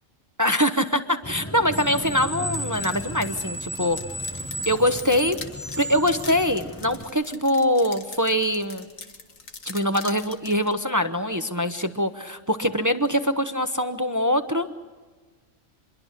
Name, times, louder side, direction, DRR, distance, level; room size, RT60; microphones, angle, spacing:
voice 1, 0.4-4.0 4.7-5.4 5.8-8.9 9.6-14.8, equal, 15° right, 8 dB, 0.9 m, -23 dB
Screech, 1.2-7.0, equal, 10° left, 1.2 m, -34 dB
sound 1, 2.5-10.7, left 4 dB, 85° left, 2.1 m, -43 dB
27.0 x 22.0 x 6.6 m, 1.3 s
omnidirectional pair, 1.3 m